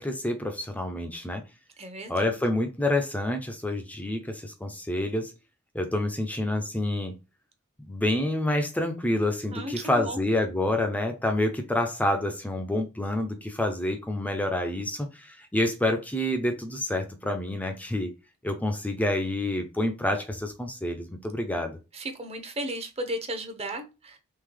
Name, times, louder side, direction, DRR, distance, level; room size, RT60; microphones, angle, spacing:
voice 1, 0.0-1.4 2.1-5.3 5.7-7.2 7.8-18.1 18.4-21.8, left 1 dB, 5° left, 5 dB, 0.5 m, -28 dB
voice 2, 1.8-2.3 9.5-10.3 21.9-24.2, right 1 dB, 30° right, 6 dB, 0.8 m, -35 dB
3.7 x 3.3 x 3.2 m, 0.28 s
head